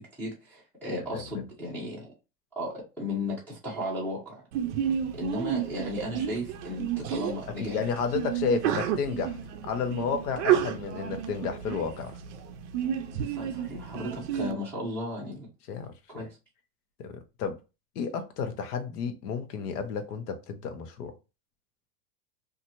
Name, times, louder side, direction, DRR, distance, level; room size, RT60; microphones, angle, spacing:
voice 1, 0.0-2.1 2.6-4.4 5.2-7.8 13.1-15.5 16.1-16.4, left 1 dB, 5° left, 0.5 m, -35 dB
Sneeze, 4.5-14.5, right 9 dB, 50° right, 0.5 m, -31 dB
voice 2, 7.6-9.4 9.6-12.2 15.7-15.9 17.0-17.6 18.0-21.1, left 6 dB, 75° left, 0.9 m, -31 dB
2.8 x 2.5 x 2.7 m
supercardioid pair, 150°, 47 cm